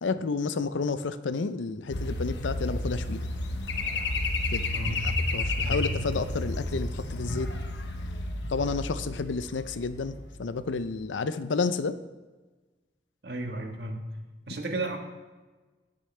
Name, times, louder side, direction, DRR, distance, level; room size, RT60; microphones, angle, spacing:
voice 1, 0.0-3.3 4.5-4.6 4.9-7.5 8.5-12.0, left 4 dB, 90° left, 12 dB, 0.6 m, -31 dB
sound 1, 1.9-10.4 10.7-11.0, left 2 dB, 70° left, 1.0 m, -31 dB
voice 2, 13.2-14.0 14.5-15.0, right 2 dB, 60° right, 3 dB, 1.4 m, -33 dB
17.0 x 6.8 x 3.3 m, 1.3 s
head